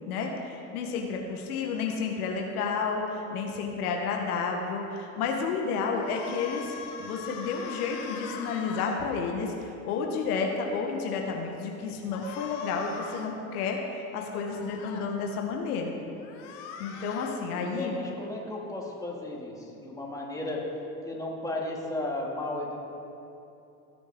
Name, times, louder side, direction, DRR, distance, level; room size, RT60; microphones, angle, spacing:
voice 1, 0.1-6.7 7.0-16.0 16.8-17.9, left 5 dB, 80° left, 1 dB, 1.4 m, -31 dB
sound 1, 5.9-9.0 12.1-13.3 14.4-15.0 16.2-17.4, left 6 dB, 65° left, 1.5 m, -41 dB
voice 2, 17.5-20.6 21.0-22.9, left 2 dB, 10° left, -3 dB, 2.4 m, -34 dB
18.0 x 6.4 x 3.7 m, 2.8 s
hypercardioid pair, 85°, 44 cm